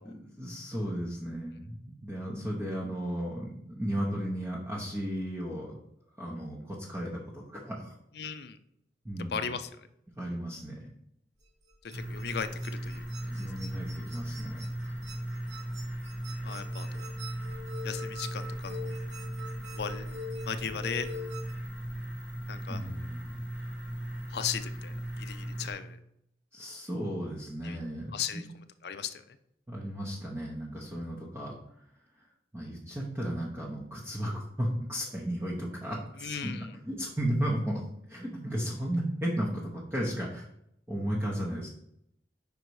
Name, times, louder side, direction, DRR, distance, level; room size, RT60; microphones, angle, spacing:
voice 1, 0.0-5.7 6.2-7.9 9.0-9.4 10.2-10.8 13.2-14.7 22.7-23.3 26.5-28.5 29.7-31.5 32.5-36.5 36.8-37.8 38.1-40.5 40.9-41.7, equal, 15° right, -4 dB, 0.8 m, -34 dB
voice 2, 8.2-8.6 9.2-9.7 11.9-13.0 16.4-17.0 17.8-19.0 19.7-20.0 20.4-21.1 22.5-22.8 24.3-26.0 27.6-27.8 28.1-28.5 28.8-29.2 36.2-36.7, left 7 dB, 60° left, 11 dB, 0.4 m, -36 dB
sound 1, 11.4-21.5, left 2 dB, 40° right, 1.0 m, -44 dB
sound 2, 11.9-25.7, right 1 dB, 75° right, 1.5 m, -38 dB
5.3 x 4.0 x 4.7 m, 0.75 s
head